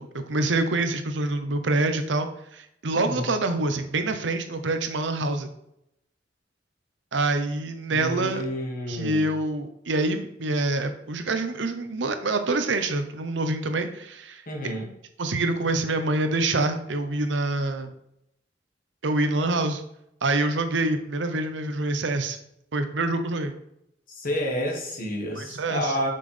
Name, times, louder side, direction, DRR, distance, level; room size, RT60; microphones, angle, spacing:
voice 1, 0.0-5.5 7.1-8.4 8.9-14.4 15.2-17.9 19.0-19.8 20.2-22.4 22.7-23.5 25.4-25.9, right 2 dB, 80° right, 8 dB, 0.8 m, -26 dB
voice 2, 2.9-3.4 7.9-9.3 14.5-14.9 24.1-26.1, equal, 50° left, 1 dB, 1.5 m, -30 dB
5.8 x 5.4 x 3.3 m, 0.77 s
head